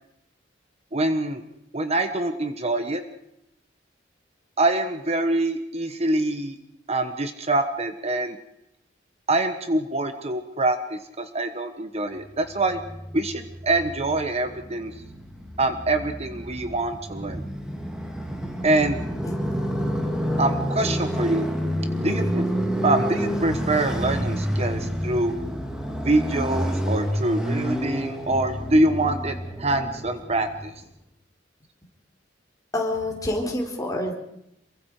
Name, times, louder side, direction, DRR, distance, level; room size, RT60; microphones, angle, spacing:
voice 1, 0.9-1.4 1.7-3.0 4.6-6.6 6.9-8.4 9.3-12.8 13.1-14.9 15.6-17.4 18.6-19.0 20.4-21.5 22.0-22.4 22.8-25.3 26.0-30.7, right 2 dB, 35° right, 7 dB, 1.3 m, -25 dB
Motorcycle, 12.5-30.7, equal, 5° right, 2.8 m, -29 dB
voice 2, 32.7-34.1, left 1 dB, 20° left, 0 dB, 4.4 m, -28 dB
27.5 x 23.0 x 4.9 m, 0.80 s
head